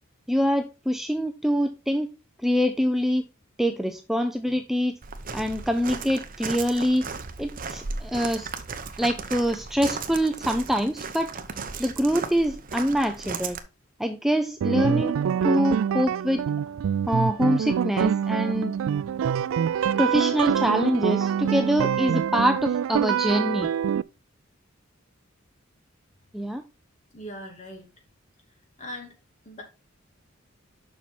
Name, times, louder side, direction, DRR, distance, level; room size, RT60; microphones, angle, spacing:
voice 1, 0.3-2.1 2.4-3.2 3.6-4.9 5.3-7.0 7.4-8.5 9.0-11.3 11.8-13.6 14.0-16.4 17.1-18.7 20.0-23.7 26.3-26.6, equal, ahead, 6 dB, 0.5 m, -25 dB
Walk footsteps, 5.0-13.6, right 5 dB, 45° right, 0.9 m, -36 dB
sound 1, 14.6-24.0, right 8 dB, 75° right, 0.3 m, -25 dB
voice 2, 27.1-27.9 28.8-29.1 29.4-29.6, equal, 35° left, 2 dB, 2.5 m, -39 dB
7.1 x 5.8 x 4.3 m, 0.29 s
head